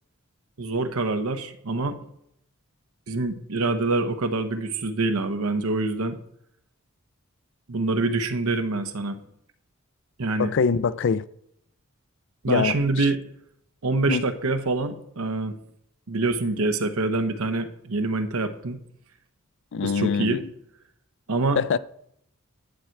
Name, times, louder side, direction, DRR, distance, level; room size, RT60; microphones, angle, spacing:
voice 1, 0.6-2.0 3.1-6.2 7.7-9.2 10.2-10.5 12.4-13.2 13.8-15.6 16.1-18.8 19.8-20.4 21.3-21.6, right 3 dB, 90° right, 0.9 m, -25 dB
voice 2, 10.4-11.2 12.5-13.1 14.1-14.2 19.7-20.5 21.6-21.8, left 5 dB, 60° left, 0.4 m, -24 dB
10.5 x 4.6 x 7.7 m
head